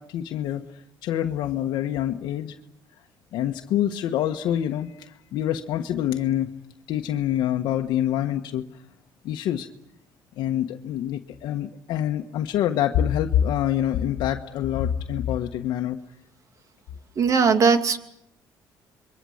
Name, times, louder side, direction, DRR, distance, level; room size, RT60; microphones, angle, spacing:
voice 1, 0.0-2.6 3.3-6.5 6.9-8.6 9.2-9.7 10.4-16.0, left 11 dB, 75° left, 3 dB, 1.4 m, -26 dB
voice 2, 17.2-18.0, right 5 dB, 45° right, 8 dB, 2.6 m, -19 dB
27.5 x 23.0 x 8.0 m, 0.76 s
cardioid pair, 120°, 8 cm